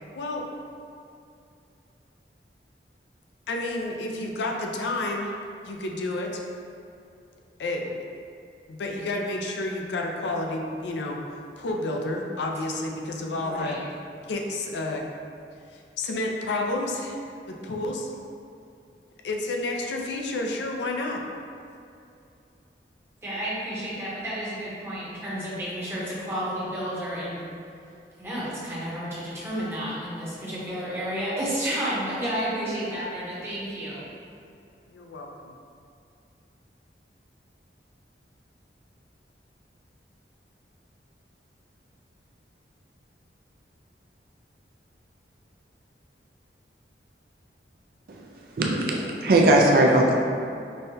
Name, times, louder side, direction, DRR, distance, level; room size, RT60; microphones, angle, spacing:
voice 1, 0.1-0.5 3.5-5.3 5.6-6.4 7.6-7.9 8.7-11.2 11.6-13.8 14.3-15.0 15.7-17.2 17.5-18.1 19.2-21.2 34.9-35.5, left 2 dB, 75° left, 1 dB, 0.4 m, -30 dB
voice 2, 13.3-13.8 23.2-27.5 28.2-34.0, equal, 15° right, -9 dB, 0.8 m, -31 dB
voice 3, 48.6-50.1, right 1 dB, 50° right, -1 dB, 0.3 m, -19 dB
5.3 x 2.2 x 2.7 m, 2.5 s
head